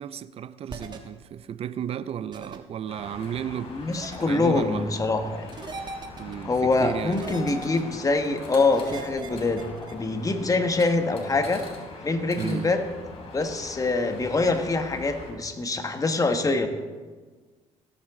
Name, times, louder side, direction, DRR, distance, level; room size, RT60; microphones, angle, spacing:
voice 1, 0.0-3.8 4.3-4.9 6.2-7.6 12.4-12.8, right 9 dB, 50° right, 0.5 m, -34 dB
sound 1, 0.7-1.0 2.3-2.6 3.9-4.2 5.5-6.3 7.1-8.0 8.7-9.9, right 3 dB, 35° right, 1.4 m, -39 dB
sound 2, 2.9-15.3, left 3 dB, 50° left, 3.2 m, -42 dB
voice 2, 3.7-5.5 6.4-9.6 9.9-11.6 12.0-12.9 13.3-16.7, left 3 dB, 25° left, 1.4 m, -24 dB
17.5 x 7.9 x 3.7 m
supercardioid pair, 80°, 13 cm